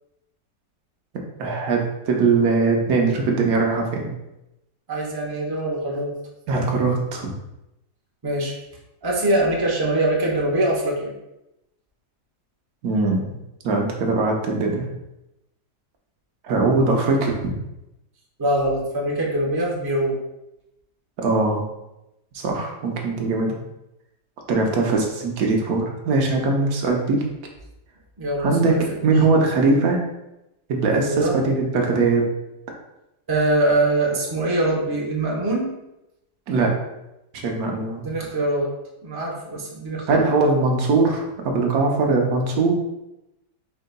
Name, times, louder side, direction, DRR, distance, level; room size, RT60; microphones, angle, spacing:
voice 1, 1.4-4.1 6.5-7.3 12.8-13.3 13.6-14.9 16.4-17.5 21.2-21.6 22.3-23.5 24.5-27.2 28.4-28.8 29.0-30.0 30.7-32.3 36.5-36.7 37.4-38.1 40.1-42.7, right 3 dB, 65° right, 0 dB, 1.2 m, -21 dB
voice 2, 4.9-6.1 8.2-8.5 9.0-11.1 18.4-20.2 28.2-28.9 31.1-31.4 33.3-35.7 38.0-38.7 39.0-40.3, right 1 dB, 35° right, -3 dB, 0.3 m, -23 dB
4.7 x 3.8 x 2.2 m, 0.90 s
omnidirectional pair, 1.8 m